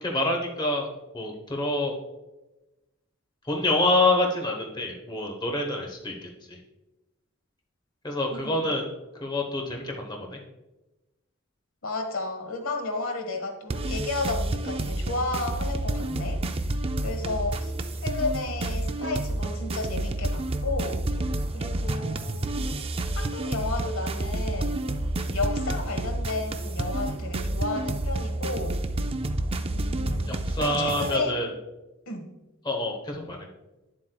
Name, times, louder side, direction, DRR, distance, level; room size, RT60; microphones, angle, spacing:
voice 1, 0.0-0.9 1.1-1.9 3.5-6.6 8.0-8.8 9.1-10.4 30.2-31.5 32.6-33.5, left 2 dB, 20° left, 1 dB, 1.0 m, -27 dB
voice 2, 8.3-8.8 11.8-16.7 17.0-17.7 18.0-21.0 21.5-24.8 25.2-28.8 29.7-31.3 32.1-32.3, left 3 dB, 75° left, 3 dB, 1.3 m, -33 dB
sound 1, 13.7-31.2, right 1 dB, 25° right, 0.4 m, -29 dB
9.8 x 7.6 x 2.3 m, 1.0 s
head